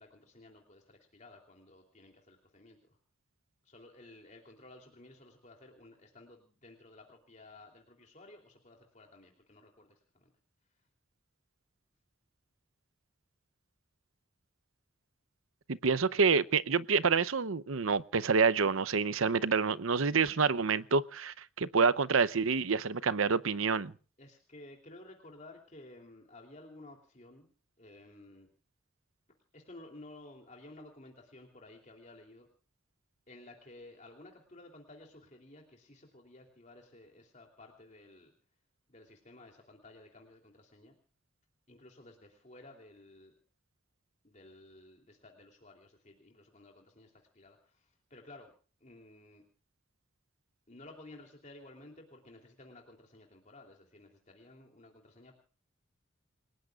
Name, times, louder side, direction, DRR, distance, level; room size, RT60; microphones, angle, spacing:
voice 1, 0.0-3.0 3.6-10.3 24.2-27.5 27.8-28.5 29.5-32.5 33.3-38.3 38.9-40.9 41.7-43.3 44.2-48.5 48.8-49.4 50.7-55.3, left 2 dB, 35° left, 2 dB, 3.2 m, -54 dB
voice 2, 15.7-23.9, right 5 dB, 80° right, 17 dB, 0.8 m, -28 dB
29.5 x 18.0 x 2.4 m, 0.42 s
head